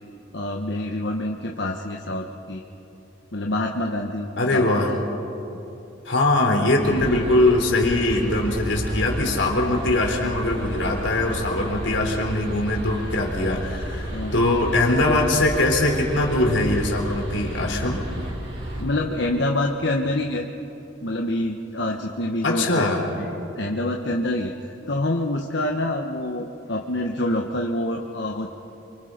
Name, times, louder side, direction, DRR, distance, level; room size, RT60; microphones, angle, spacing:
voice 1, 0.3-2.6 3.3-4.7 11.9-12.0 14.1-14.5 18.7-20.5 21.0-22.9 23.2-24.5 24.9-28.5, left 1 dB, 70° left, 1 dB, 1.3 m, -26 dB
voice 2, 4.4-5.0 6.1-18.0 22.4-23.0, left 2 dB, 90° left, 1 dB, 3.8 m, -22 dB
sound 1, 6.8-18.8, right 1 dB, 80° right, 5.3 m, -32 dB
29.0 x 24.5 x 5.2 m, 2.8 s
head